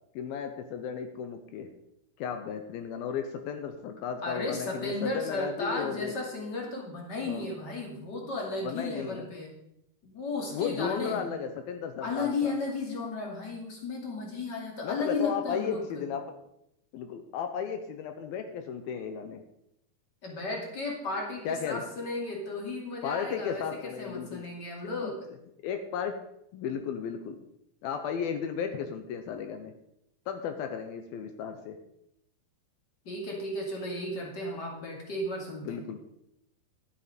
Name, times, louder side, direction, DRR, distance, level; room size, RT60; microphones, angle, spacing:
voice 1, 0.2-1.7 2.2-6.1 7.3-7.4 8.6-9.3 10.5-12.6 14.8-16.3 16.9-19.4 21.4-21.8 23.0-24.4 24.8-25.1 25.6-26.2 26.5-27.4 27.8-29.7 30.3-31.8 35.6-36.0, left 7 dB, 75° left, 7 dB, 2.5 m, -34 dB
voice 2, 4.2-9.5 10.0-11.3 12.0-15.8 20.2-25.2 33.0-35.8, left 3 dB, 30° left, -1 dB, 2.5 m, -34 dB
11.5 x 8.5 x 5.1 m, 0.79 s
omnidirectional pair, 4.7 m